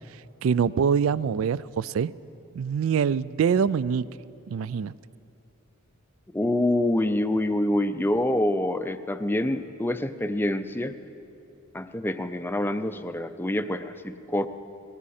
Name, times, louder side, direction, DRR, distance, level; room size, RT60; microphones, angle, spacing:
voice 1, 0.4-2.1 2.5-4.1 4.5-4.9, right 7 dB, 65° right, 19 dB, 0.3 m, -24 dB
voice 2, 6.3-11.0 11.7-14.5, left 1 dB, 10° left, 11 dB, 0.4 m, -26 dB
20.5 x 16.0 x 4.3 m, 2.7 s
head